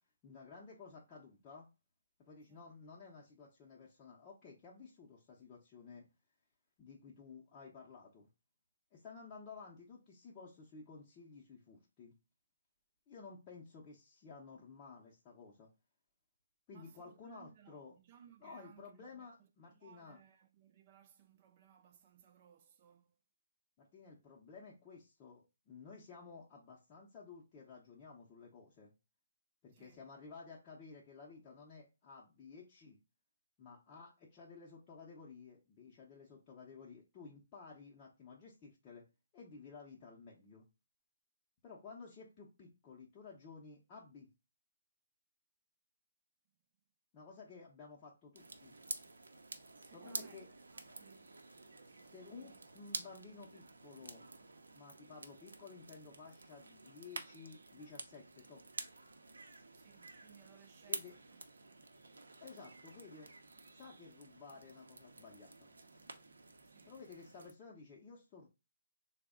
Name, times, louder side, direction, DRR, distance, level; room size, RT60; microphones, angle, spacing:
voice 1, 0.2-1.7 2.3-6.1 6.8-8.3 8.9-12.1 13.1-15.7 16.7-18.0 18.4-20.2 23.8-28.9 29.6-33.0 33.6-39.0 39.3-40.7 41.6-44.3 47.1-48.7 49.9-50.5 52.1-54.3 54.7-58.6 60.9-61.1 62.4-63.3 63.7-65.7 66.9-68.5, left 4 dB, 20° left, 0.6 m, -54 dB
voice 2, 16.7-23.2 29.7-30.0 49.5-50.4 50.7-51.4 51.8-52.6 59.7-61.8 66.6-67.0, right 8 dB, 35° right, 0.4 m, -64 dB
sound 1, 48.4-67.5, right 3 dB, 90° right, 0.6 m, -50 dB
3.3 x 2.1 x 3.5 m
hypercardioid pair, 160°, 0 cm